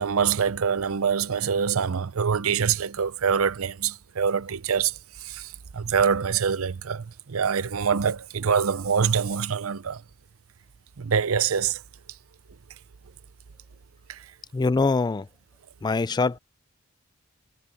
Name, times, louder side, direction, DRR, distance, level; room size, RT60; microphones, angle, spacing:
voice 1, 0.0-10.0 11.0-11.8 14.1-14.2, right 6 dB, 75° right, 0.6 m, -25 dB
voice 2, 14.5-15.3 15.8-16.4, left 3 dB, 20° left, 0.3 m, -23 dB
head